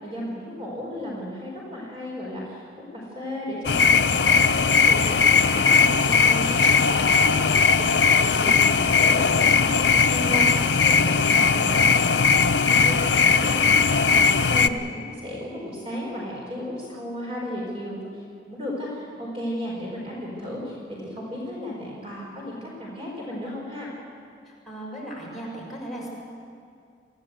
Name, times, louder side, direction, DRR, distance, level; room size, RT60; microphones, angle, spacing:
voice 1, 0.0-18.0 18.5-23.9, equal, 30° right, -4 dB, 4.5 m, -34 dB
sound 1, 3.6-14.7, left 5 dB, 65° left, 0.7 m, -19 dB
voice 2, 24.4-26.1, right 1 dB, ahead, -5 dB, 6.3 m, -37 dB
24.5 x 16.5 x 8.1 m, 2.3 s
head